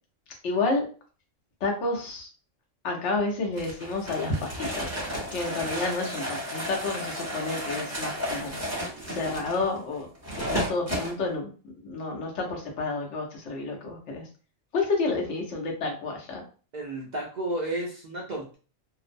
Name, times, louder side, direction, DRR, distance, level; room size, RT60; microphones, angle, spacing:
voice 1, 0.4-0.8 1.6-2.3 2.8-4.9 5.3-8.6 9.1-10.1 10.4-11.5 11.8-14.3 14.7-16.4, left 3 dB, 65° left, 0 dB, 1.0 m, -30 dB
sound 1, 3.6-11.1, equal, 15° right, 0.7 m, -33 dB
voice 2, 16.7-18.6, right 1 dB, 70° right, -4 dB, 0.4 m, -32 dB
2.5 x 2.0 x 2.5 m, 0.38 s
omnidirectional pair, 1.4 m